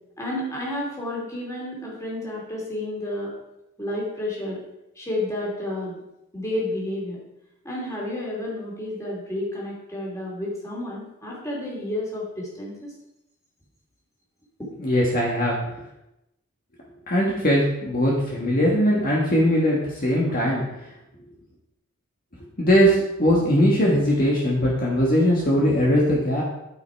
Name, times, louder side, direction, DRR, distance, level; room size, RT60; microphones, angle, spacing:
voice 1, 0.2-3.3 3.8-4.6 5.0-6.0 6.3-7.2 7.6-12.9 14.6-14.7, left 1 dB, 15° left, -4 dB, 2.8 m, -31 dB
voice 2, 14.8-15.6 17.1-20.9 22.6-26.4, equal, 40° left, -4 dB, 1.7 m, -20 dB
12.0 x 5.8 x 4.7 m, 0.88 s
head